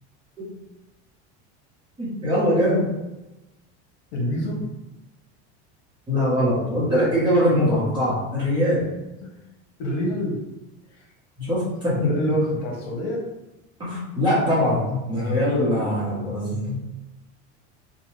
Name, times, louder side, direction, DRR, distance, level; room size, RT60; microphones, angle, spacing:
voice 1, 2.0-2.9 6.1-8.9 11.4-12.1 13.8-16.8, equal, 15° right, -8 dB, 0.9 m, -22 dB
voice 2, 4.1-4.6 9.2-9.3 9.8-10.4 11.9-13.2 15.1-15.5, left 1 dB, 70° left, -1 dB, 1.0 m, -26 dB
2.7 x 2.3 x 3.1 m, 0.99 s
cardioid pair, 165°, 34 cm